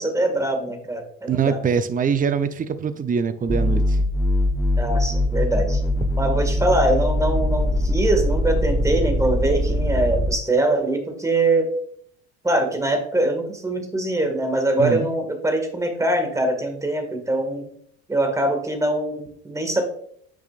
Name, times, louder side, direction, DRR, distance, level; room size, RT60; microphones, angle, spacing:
voice 1, 0.0-1.6 4.8-5.8 6.2-11.7 12.4-17.7 18.1-19.9, right 1 dB, 10° right, 5 dB, 2.0 m, -23 dB
voice 2, 1.3-4.0 14.8-15.1, right 6 dB, 30° right, 11 dB, 0.7 m, -23 dB
sound 1, 3.5-10.3, left 1 dB, 10° left, 1.0 m, -22 dB
8.6 x 6.3 x 2.5 m, 0.63 s
hypercardioid pair, 80°, 29 cm